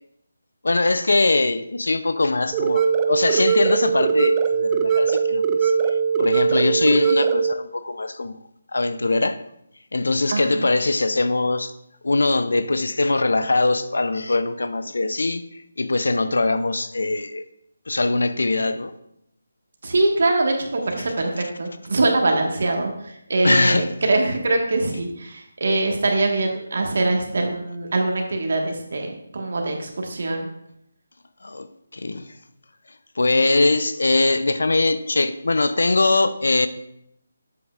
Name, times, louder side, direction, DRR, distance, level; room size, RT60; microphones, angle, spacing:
voice 1, 0.6-5.7 6.2-8.4 8.7-9.4 9.9-11.7 12.0-15.5 15.8-17.5 17.9-18.9 21.0-21.1 23.4-24.0 31.4-31.7 31.9-32.3 33.2-36.7, left 2 dB, 85° left, 0.5 m, -21 dB
sound 1, 2.5-7.5, right 6 dB, 15° right, 0.4 m, -20 dB
voice 2, 10.3-10.7 19.8-30.5, right 2 dB, 60° right, 1.5 m, -23 dB
8.1 x 7.8 x 2.5 m
figure-of-eight pair, 165°, 0 cm